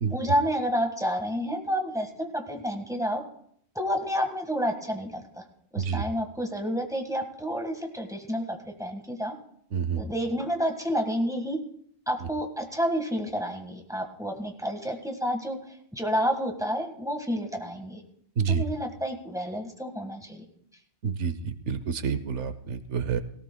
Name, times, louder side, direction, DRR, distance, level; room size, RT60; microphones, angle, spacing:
voice 1, 0.1-3.2 3.7-5.4 5.7-9.3 9.9-11.6 12.1-18.0 18.5-20.4, equal, 5° right, 2 dB, 1.5 m, -30 dB
voice 2, 9.7-10.0 18.4-18.6 21.0-23.2, right 6 dB, 85° right, 12 dB, 1.2 m, -28 dB
18.0 x 17.5 x 2.3 m, 0.69 s
omnidirectional pair, 1.2 m